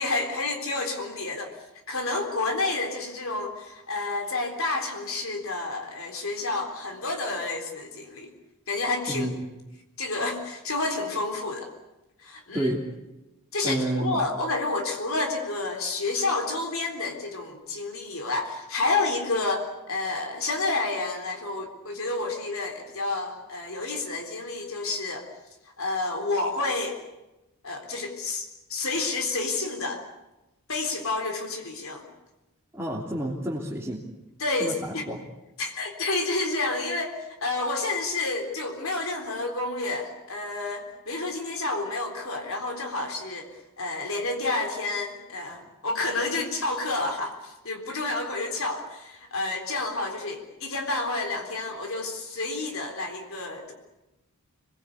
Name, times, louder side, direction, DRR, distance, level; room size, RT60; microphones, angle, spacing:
voice 1, 0.0-1.5 1.9-8.3 8.7-9.3 10.0-11.7 12.2-12.7 13.5-25.3 25.8-27.0 27.6-30.0 30.7-32.1 34.4-35.1 35.6-43.5 43.8-53.7, left 3 dB, 65° left, 3 dB, 3.8 m, -29 dB
voice 2, 13.6-14.2 32.7-34.0 34.6-35.2, right 1 dB, 10° right, -4 dB, 3.2 m, -29 dB
27.5 x 20.5 x 8.4 m, 1.0 s
head